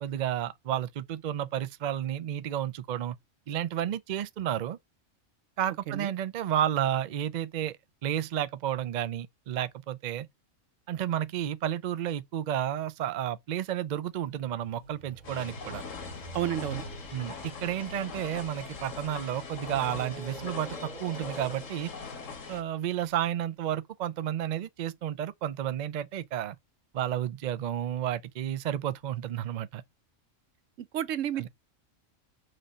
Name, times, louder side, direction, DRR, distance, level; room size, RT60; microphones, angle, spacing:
voice 1, 0.0-3.2 3.5-4.8 5.6-7.8 8.0-10.3 10.9-15.8 17.1-21.9 22.5-26.6 26.9-29.8 31.4-31.5, right 11 dB, 60° right, 0.4 m, -31 dB
sound 1, 14.2-18.9 19.6-23.1, right 2 dB, 35° right, 2.7 m, -47 dB
sound 2, 15.2-22.6, left 5 dB, 90° left, 1.6 m, -41 dB
voice 2, 16.3-16.8 30.8-31.5, right 11 dB, 80° right, 1.0 m, -31 dB
4.9 x 3.9 x 5.5 m
omnidirectional pair, 1.3 m